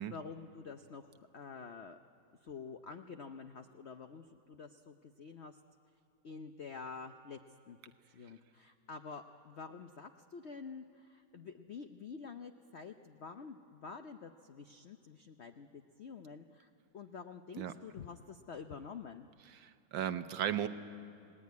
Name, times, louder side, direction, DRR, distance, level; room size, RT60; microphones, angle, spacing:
voice 1, 0.0-2.0 2.4-5.6 6.2-7.4 7.7-7.8 8.1-19.3, left 5 dB, 60° left, 7 dB, 0.6 m, -48 dB
voice 2, 19.5-20.7, right 10 dB, 70° right, 10 dB, 1.6 m, -36 dB
30.0 x 18.5 x 9.4 m, 2.4 s
omnidirectional pair, 2.2 m